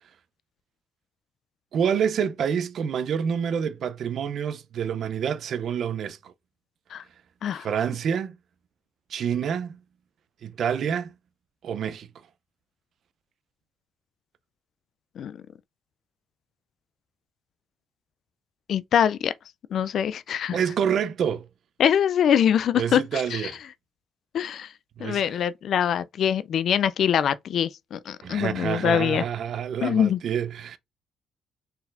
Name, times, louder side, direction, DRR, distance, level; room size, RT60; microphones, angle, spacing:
voice 1, 1.7-6.3 7.5-8.4 9.1-9.8 10.4-11.1 11.6-12.1 20.5-21.5 22.8-23.6 25.0-25.2 28.2-30.8, right 8 dB, 65° right, 0.5 m, -27 dB
voice 2, 18.7-19.3 19.7-20.6 21.8-23.5 24.3-24.7 25.0-29.2 29.8-30.2, left 9 dB, 65° left, 0.3 m, -24 dB
4.2 x 3.9 x 2.5 m
cardioid pair, 90°, 0 cm